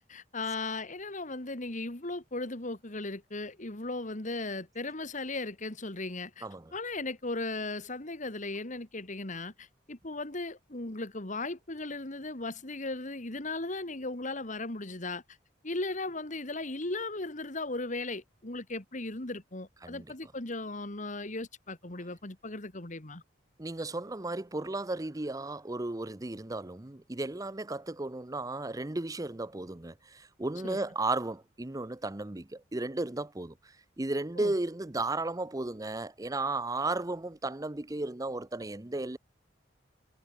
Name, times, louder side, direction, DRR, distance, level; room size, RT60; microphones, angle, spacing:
voice 1, 0.0-15.2 15.6-23.2 30.6-30.8 34.4-34.5, left 2 dB, 45° left, 2.4 m, -37 dB
voice 2, 6.4-6.7 19.8-20.0 23.6-39.2, right 2 dB, 20° right, 0.7 m, -34 dB
head